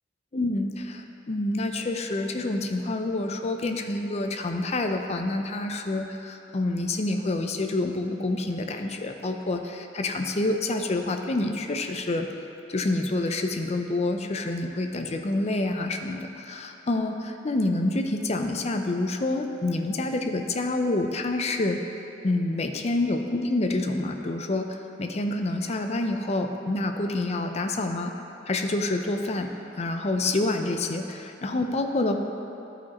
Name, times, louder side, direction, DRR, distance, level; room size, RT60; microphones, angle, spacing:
voice 1, 0.3-12.3 12.7-21.8 22.2-28.1 28.5-29.5 29.8-32.2, left 2 dB, 35° left, 5 dB, 0.5 m, -27 dB
12.0 x 5.1 x 4.2 m, 2.9 s
head